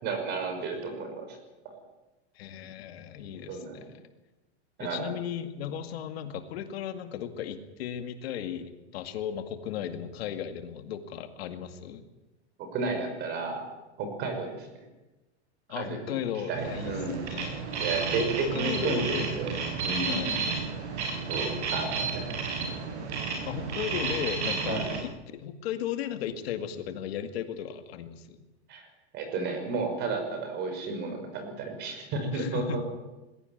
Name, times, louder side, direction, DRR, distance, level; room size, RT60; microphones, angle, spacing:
voice 1, 0.0-1.4 1.6-1.8 3.5-3.9 4.8-5.1 12.6-13.6 14.0-14.7 15.7-16.2 16.5-17.3 17.8-19.5 19.8-20.5 21.3-22.3 24.7-25.0 28.7-28.9 29.1-32.8, right 3 dB, 30° right, 6 dB, 5.7 m, -32 dB
voice 2, 2.4-3.9 4.8-12.0 15.7-16.9 17.2-17.7 18.2-19.3 20.0-20.4 23.4-28.4 32.3-32.8, left 9 dB, 65° left, 8 dB, 2.2 m, -36 dB
sound 1, 16.5-25.0, right 4 dB, 80° right, 7.0 m, -32 dB
21.5 x 16.5 x 9.4 m, 1.1 s
supercardioid pair, 165°, 34 cm